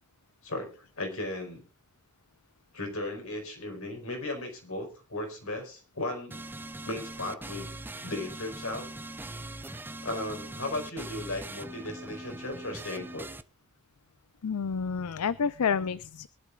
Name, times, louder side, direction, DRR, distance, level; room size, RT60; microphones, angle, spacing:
voice 1, 0.4-1.6 2.7-6.4 6.8-7.7 8.0-8.8 10.0-13.3, left 2 dB, 70° left, 3 dB, 4.8 m, -36 dB
sound 1, 6.3-13.4, right 2 dB, 10° right, 0.5 m, -41 dB
voice 2, 14.4-16.3, left 6 dB, 85° left, 16 dB, 0.5 m, -29 dB
23.5 x 11.5 x 2.4 m, 0.34 s
head